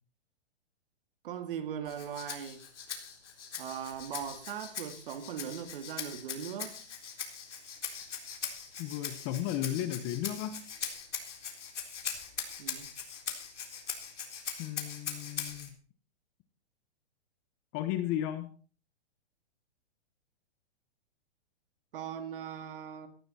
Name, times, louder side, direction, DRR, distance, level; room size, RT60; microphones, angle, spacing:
voice 1, 1.2-2.6 3.6-6.8 12.6-12.9 21.9-23.1, right 8 dB, 50° right, 8 dB, 2.5 m, -39 dB
Rattle (instrument), 1.9-15.7, left 7 dB, 90° left, 3.9 m, -41 dB
voice 2, 8.8-10.6 14.6-15.7 17.7-18.5, left 12 dB, 20° left, 12 dB, 0.9 m, -34 dB
17.5 x 12.5 x 4.3 m, 0.41 s
hypercardioid pair, 160°, 35 cm